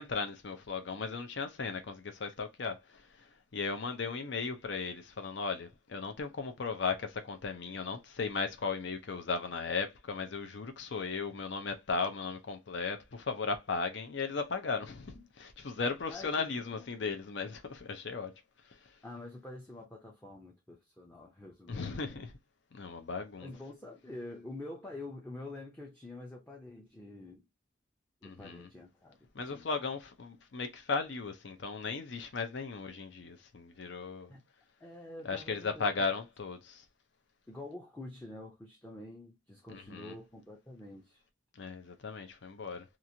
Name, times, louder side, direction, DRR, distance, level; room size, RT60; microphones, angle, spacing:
voice 1, 0.0-3.3 3.5-18.3 21.7-22.3 22.7-23.5 28.2-28.7 29.3-34.3 35.2-36.8 39.7-40.2 41.6-42.8, left 4 dB, 65° left, 0.6 m, -36 dB
voice 2, 16.1-17.0 19.0-22.2 23.4-27.4 28.2-29.7 34.3-34.4 34.8-35.9 37.5-41.2, left 2 dB, 10° left, 0.5 m, -47 dB
3.0 x 2.4 x 2.6 m
head